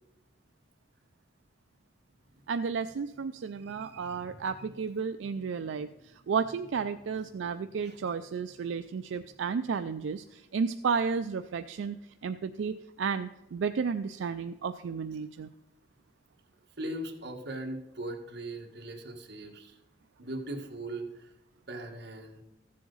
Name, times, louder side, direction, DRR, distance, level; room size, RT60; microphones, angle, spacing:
voice 1, 2.5-5.9 6.3-12.0 12.2-15.5, right 5 dB, 85° right, 9 dB, 0.4 m, -32 dB
voice 2, 3.4-4.9 5.6-6.3 7.4-7.5 7.8-8.1 16.8-19.8 20.2-21.3 21.7-22.4, right 1 dB, 60° right, 2 dB, 1.5 m, -41 dB
14.0 x 7.5 x 3.9 m, 1.0 s
head